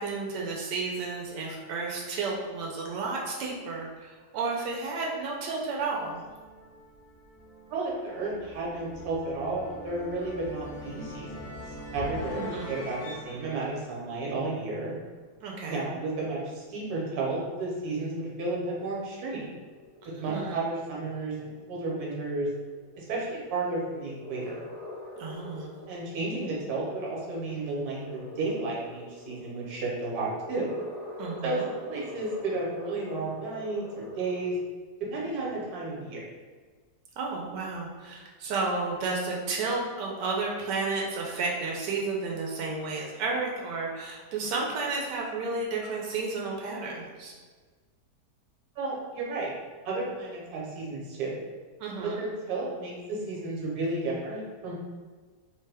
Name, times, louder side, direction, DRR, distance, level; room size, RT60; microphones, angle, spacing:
voice 1, 0.0-6.2 12.3-12.8 15.4-15.9 20.0-20.6 25.2-25.7 31.2-31.7 37.2-47.3 51.8-52.2, right 3 dB, 90° right, -2 dB, 1.2 m, -32 dB
sound 1, 5.8-14.9, left 1 dB, 70° left, 0.9 m, -43 dB
voice 2, 7.7-11.4 11.9-14.9 15.7-19.5 20.1-22.5 23.0-24.6 25.9-30.7 31.4-34.5 35.0-36.2 48.8-49.6 49.8-51.3 52.0-54.7, right 2 dB, 65° right, -4 dB, 1.2 m, -32 dB
sound 2, 17.9-34.5, left 1 dB, 90° left, 0.3 m, -45 dB
3.0 x 2.1 x 3.3 m, 1.4 s
omnidirectional pair, 1.8 m